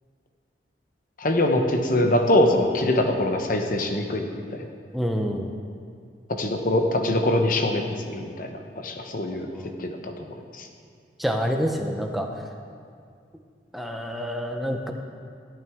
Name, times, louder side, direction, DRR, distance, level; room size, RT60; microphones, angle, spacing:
voice 1, 1.2-4.3 4.5-4.7 6.3-9.5 9.8-10.1 10.5-10.7, left 1 dB, 50° left, 4 dB, 0.9 m, -23 dB
voice 2, 4.9-5.5 9.5-9.8 11.2-12.3 13.7-14.9, equal, ahead, 2 dB, 0.7 m, -27 dB
14.0 x 9.0 x 3.6 m, 2.2 s
head